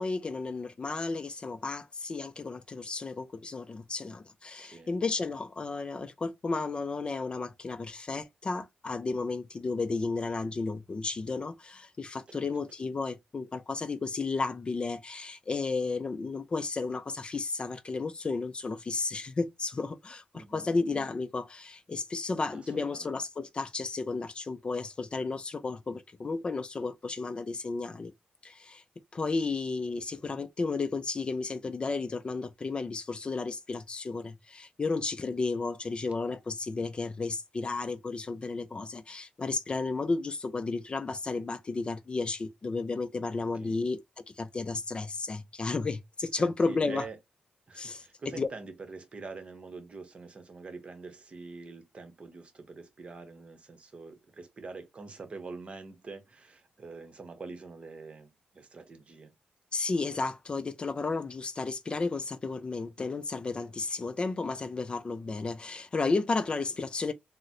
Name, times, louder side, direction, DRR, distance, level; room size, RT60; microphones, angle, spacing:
voice 1, 0.0-28.1 28.4-28.8 29.1-44.0 44.4-47.1 47.7-48.5 59.7-67.1, left 3 dB, 35° left, 0.3 m, -33 dB
voice 2, 4.5-4.9 12.3-12.5 20.3-20.7 22.5-23.1 43.6-43.8 46.4-47.2 47.7-59.3, right 4 dB, 40° right, 0.8 m, -45 dB
3.8 x 2.0 x 2.7 m
cardioid pair, 105°, 3 cm